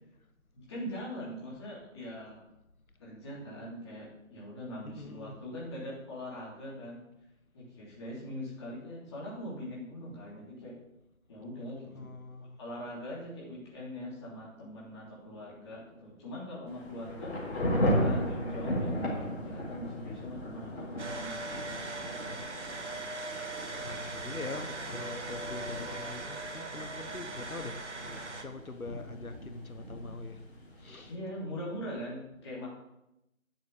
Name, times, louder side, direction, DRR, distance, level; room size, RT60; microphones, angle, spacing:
voice 1, 0.5-2.4 3.0-7.0 7.5-10.7 11.3-12.1 12.4-17.3 17.9-21.7 31.1-32.7, equal, 20° left, -5 dB, 3.2 m, -42 dB
voice 2, 4.8-5.4 11.9-12.6 23.2-23.3 23.6-30.5 30.7-31.1, left 3 dB, 85° left, 8 dB, 1.3 m, -44 dB
Thunder / Rain, 16.7-31.1, equal, 50° left, 4.1 m, -36 dB
sound 1, 21.0-28.4, right 2 dB, 55° right, 1.7 m, -40 dB
10.5 x 7.4 x 7.0 m, 0.88 s
figure-of-eight pair, 160°, 41 cm